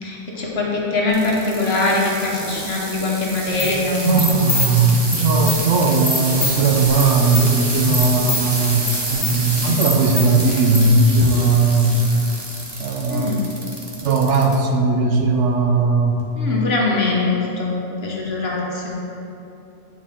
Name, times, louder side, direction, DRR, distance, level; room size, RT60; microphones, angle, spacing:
voice 1, 0.0-4.4 13.1-13.4 16.4-18.9, left 3 dB, 60° left, -2 dB, 1.2 m, -22 dB
sound 1, 1.1-14.6 15.1-15.5 16.2-16.3, right 1 dB, 25° right, 0.9 m, -28 dB
sound 2, 3.4-10.9, left 2 dB, 15° left, 0.8 m, -25 dB
voice 2, 4.0-12.0 12.8-13.3 14.0-16.2, right 3 dB, 75° right, 2 dB, 1.0 m, -18 dB
8.8 x 4.6 x 3.5 m, 2.9 s
omnidirectional pair, 1.2 m